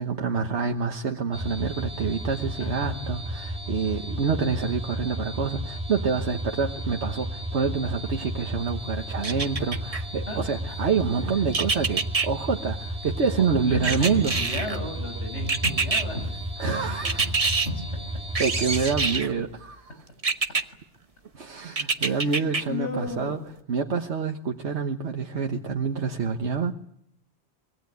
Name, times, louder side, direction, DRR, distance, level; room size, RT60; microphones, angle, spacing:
voice 1, 0.0-14.3 16.6-17.3 18.4-19.9 21.3-23.4 23.7-26.7, right 5 dB, 80° right, 3 dB, 1.6 m, -27 dB
sound 1, 1.3-19.2, right 1 dB, 5° right, 2.0 m, -33 dB
voice 2, 2.6-3.1 10.3-10.4 10.7-10.8 13.4-16.5 17.1-17.3 17.9-18.0 22.0-23.5, left 2 dB, 90° left, 5 dB, 6.4 m, -35 dB
sound 2, 9.2-10.0 11.5-12.3 13.8-14.8 15.5-16.0 17.0-17.7 18.3-19.3 20.2-20.6 21.8-22.6 23.1-23.2, right 4 dB, 35° right, 1.1 m, -25 dB
sound 3, 13.7-19.8, equal, 75° left, 6.8 m, -40 dB
25.0 x 21.5 x 9.4 m, 0.72 s
omnidirectional pair, 1.2 m